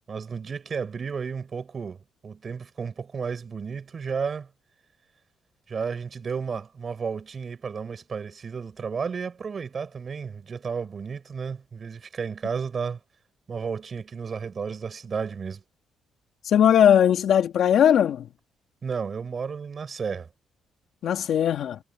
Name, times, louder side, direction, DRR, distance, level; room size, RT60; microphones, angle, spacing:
voice 1, 0.1-4.5 5.7-13.0 13.5-15.6 18.8-20.3, right 6 dB, 30° right, 7.3 m, -32 dB
voice 2, 16.4-18.3 21.0-21.8, left 9 dB, 55° left, 3.0 m, -19 dB
cardioid pair, 165°, 0 cm